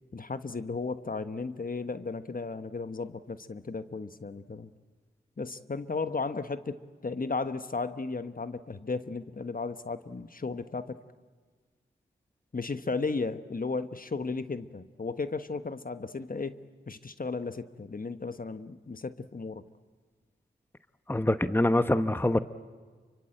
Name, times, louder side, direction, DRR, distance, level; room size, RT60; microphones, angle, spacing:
voice 1, 0.1-4.7 5.4-6.8 7.0-11.0 12.5-19.6, left 4 dB, 45° left, 10 dB, 1.4 m, -35 dB
voice 2, 21.1-22.4, left 1 dB, 10° left, 11 dB, 1.0 m, -24 dB
29.5 x 24.5 x 8.0 m, 1.5 s
cardioid pair, 40°, 20 cm